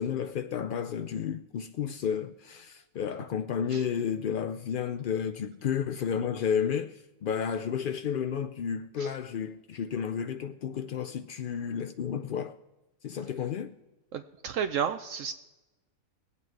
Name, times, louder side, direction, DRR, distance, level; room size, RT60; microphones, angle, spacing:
voice 1, 0.0-12.5 13.0-13.7, left 7 dB, 80° left, 0.4 m, -32 dB
voice 2, 14.1-15.3, right 8 dB, 70° right, 0.9 m, -32 dB
20.0 x 8.4 x 4.6 m
omnidirectional pair, 1.5 m